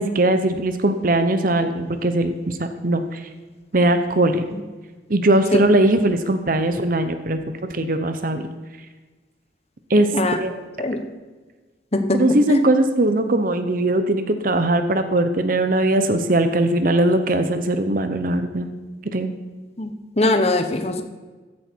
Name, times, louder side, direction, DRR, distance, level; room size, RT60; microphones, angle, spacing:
voice 1, 0.0-3.3 3.7-4.4 5.1-8.5 9.9-10.5 12.1-18.7 19.1-19.3, right 1 dB, 45° right, 9 dB, 0.9 m, -20 dB
voice 2, 20.2-21.0, left 2 dB, 35° left, 6 dB, 1.1 m, -21 dB
15.5 x 11.0 x 4.6 m, 1.3 s
head